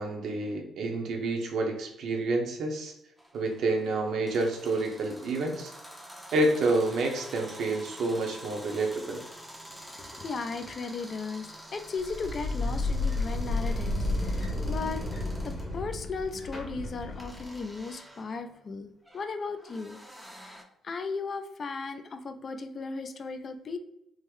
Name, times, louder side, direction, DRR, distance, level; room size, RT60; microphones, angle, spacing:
voice 1, 0.0-2.9 3.3-5.7 6.3-9.2, right 2 dB, 70° right, 3 dB, 0.7 m, -29 dB
sound 1, 3.2-15.7 17.2-20.6, equal, 5° right, 0.5 m, -48 dB
voice 2, 9.7-15.1 15.4-20.0 20.4-20.6 20.8-23.8, left 4 dB, 45° left, 8 dB, 0.4 m, -36 dB
sound 2, 12.0-17.6, left 2 dB, 30° left, 1.0 m, -31 dB
3.5 x 2.1 x 3.1 m, 0.83 s
cardioid pair, 90°, 0 cm